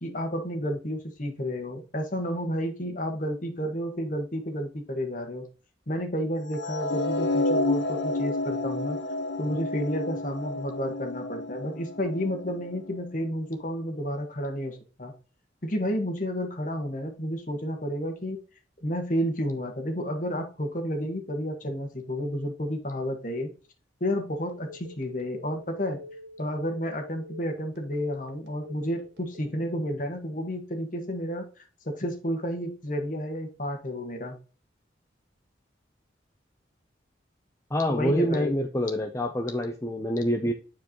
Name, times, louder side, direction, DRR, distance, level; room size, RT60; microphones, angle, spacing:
voice 1, 0.0-5.4 5.9-9.0 9.4-15.1 15.6-18.4 18.8-23.5 24.0-26.0 26.4-31.4 31.8-34.4 37.9-38.6, equal, 45° left, 4 dB, 1.6 m, -31 dB
sound 1, 6.5-12.8, left 2 dB, 85° left, 1.2 m, -30 dB
Telephone, 24.5-29.7, left 1 dB, 65° right, 2.1 m, -46 dB
voice 2, 37.7-40.5, equal, 15° left, 4 dB, 0.6 m, -26 dB
9.5 x 4.6 x 3.0 m, 0.36 s
head